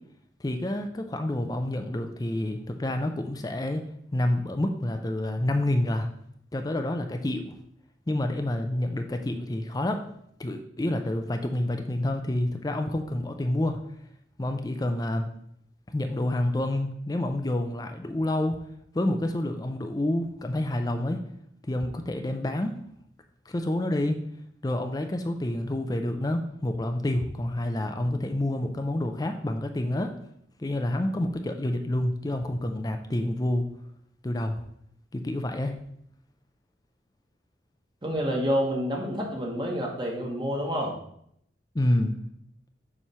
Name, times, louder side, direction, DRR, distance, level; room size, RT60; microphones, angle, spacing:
voice 1, 0.4-3.8 4.1-6.1 6.5-7.5 8.1-10.0 10.4-13.8 14.4-15.3 15.9-18.6 18.9-21.2 21.6-22.8 23.5-24.2 24.6-30.1 30.6-33.7 34.2-34.6 35.1-35.7 41.7-42.2, left 1 dB, 20° left, 5 dB, 0.4 m, -28 dB
voice 2, 38.0-40.9, equal, 25° right, -2 dB, 1.2 m, -28 dB
7.2 x 3.2 x 5.5 m, 0.71 s
head